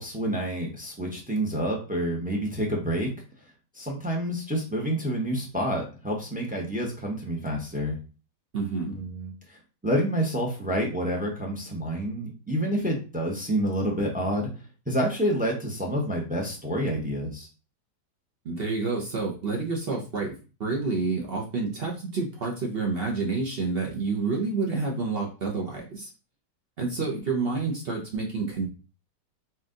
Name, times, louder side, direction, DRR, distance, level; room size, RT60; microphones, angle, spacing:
voice 1, 0.0-3.1 3.7-8.0 8.9-9.6 9.8-14.5 14.9-17.5, equal, 10° right, 0 dB, 0.6 m, -28 dB
voice 2, 8.5-9.0 18.4-20.3 20.6-26.1 26.8-28.7, right 3 dB, 45° right, -1 dB, 0.9 m, -29 dB
4.4 x 2.5 x 3.7 m, 0.34 s
omnidirectional pair, 1.8 m